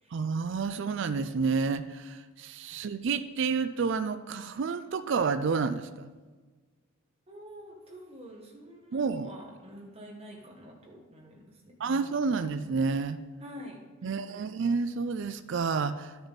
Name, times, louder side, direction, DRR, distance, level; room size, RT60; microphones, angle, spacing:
voice 1, 0.1-6.1 8.9-9.3 11.8-13.2 14.0-16.3, right 5 dB, 55° right, 13 dB, 0.3 m, -30 dB
voice 2, 7.3-12.4 13.4-14.5, equal, 25° right, -2 dB, 1.6 m, -48 dB
11.0 x 6.9 x 4.1 m, 1.4 s
head